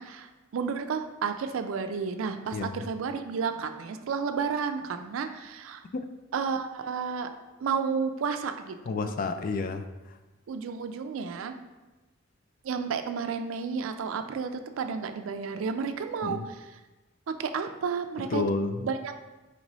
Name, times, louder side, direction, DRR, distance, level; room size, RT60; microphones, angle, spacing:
voice 1, 0.0-5.8 6.3-7.3 7.6-9.1 10.5-11.5 12.6-16.7 17.3-18.4 18.8-19.1, right 5 dB, 75° right, 8 dB, 0.4 m, -32 dB
voice 2, 8.9-9.9 16.2-16.5 18.3-18.9, left 3 dB, 45° left, 8 dB, 0.3 m, -30 dB
4.4 x 3.0 x 4.0 m, 1.1 s
head